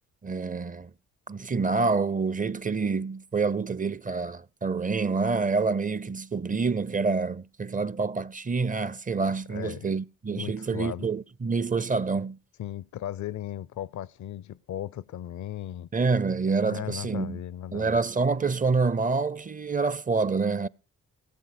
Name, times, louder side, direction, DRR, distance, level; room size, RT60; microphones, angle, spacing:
voice 1, 0.2-0.9 1.3-12.4 15.9-17.4 17.7-20.7, right 4 dB, 25° right, 0.6 m, -27 dB
voice 2, 9.5-9.9 10.3-11.1 12.6-15.9 16.6-18.0, left 11 dB, 60° left, 0.6 m, -36 dB
18.0 x 7.4 x 6.6 m
supercardioid pair, 45°, 33 cm